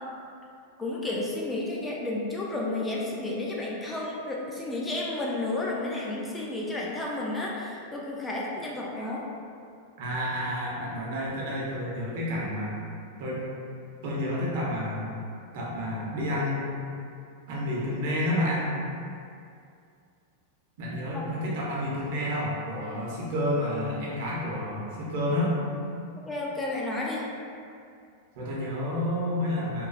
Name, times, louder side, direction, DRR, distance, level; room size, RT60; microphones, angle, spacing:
voice 1, 0.8-9.3 21.1-21.2 26.3-27.2, left 2 dB, 10° left, -4 dB, 0.3 m, -32 dB
voice 2, 10.0-12.7 13.2-13.4 14.0-15.2 15.5-16.7 17.5-18.7 20.8-25.5 28.4-29.9, left 1 dB, 60° right, -5 dB, 0.7 m, -30 dB
3.0 x 2.3 x 2.3 m, 2.4 s
supercardioid pair, 140°, 0 cm